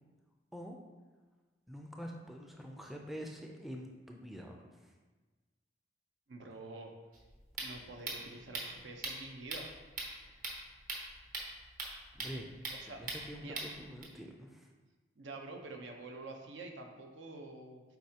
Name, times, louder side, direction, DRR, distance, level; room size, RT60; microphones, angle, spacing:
voice 1, 1.7-4.9 10.3-10.6 12.1-12.5 13.0-14.7, equal, ahead, 1 dB, 0.4 m, -46 dB
voice 2, 6.3-6.9 7.6-9.7 12.8-13.0 13.4-13.6 15.2-17.8, right 2 dB, 70° right, 3 dB, 0.8 m, -47 dB
sound 1, 7.1-14.0, right 3 dB, 45° right, 1.1 m, -43 dB
7.9 x 4.7 x 2.8 m, 1.3 s
head